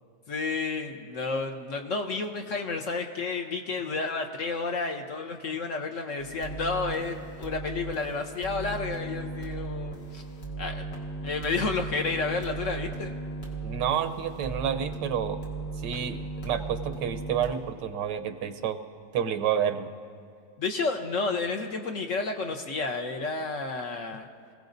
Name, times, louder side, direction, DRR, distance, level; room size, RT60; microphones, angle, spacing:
voice 1, 0.3-10.2 10.6-10.9 11.2-13.1 20.6-24.3, left 3 dB, 55° left, 4 dB, 1.0 m, -31 dB
sound 1, 6.2-17.5, right 3 dB, 80° left, 2.8 m, -37 dB
voice 2, 13.6-15.4 15.8-18.8 19.1-19.9, right 8 dB, 90° right, 8 dB, 1.4 m, -29 dB
27.0 x 17.0 x 2.6 m, 2.3 s
omnidirectional pair, 1.8 m